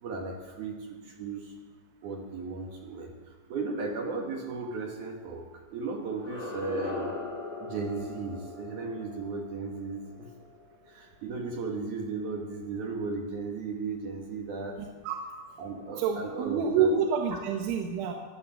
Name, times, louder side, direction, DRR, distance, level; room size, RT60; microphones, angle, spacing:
voice 1, 0.0-1.5 2.0-3.1 3.5-7.1 7.6-10.3 10.9-14.7 15.6-16.9, right 4 dB, 65° right, 1 dB, 2.0 m, -36 dB
sound 1, 6.1-11.0, left 3 dB, 25° left, 0.8 m, -39 dB
voice 2, 14.8-15.2 16.0-18.1, right 6 dB, 85° right, 2 dB, 3.5 m, -27 dB
15.5 x 11.0 x 7.4 m, 1.4 s
omnidirectional pair, 5.4 m